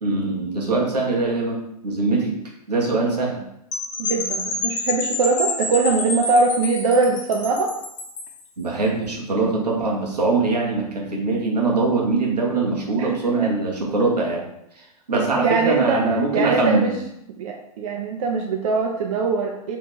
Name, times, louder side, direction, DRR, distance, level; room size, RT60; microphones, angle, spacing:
voice 1, 0.0-2.3 2.7-3.4 8.6-14.4 14.7-16.9, right 3 dB, 85° right, -2 dB, 1.0 m, -22 dB
Percussion / Wind chime, 3.7-8.4, left 3 dB, 55° left, 0.8 m, -28 dB
voice 2, 4.0-7.8 13.0-13.1 13.4-13.5 15.4-16.1 16.3-16.9 17.4-19.8, right 4 dB, 60° right, 2 dB, 0.4 m, -22 dB
3.0 x 2.4 x 3.6 m, 0.80 s
hypercardioid pair, 110°, 20 cm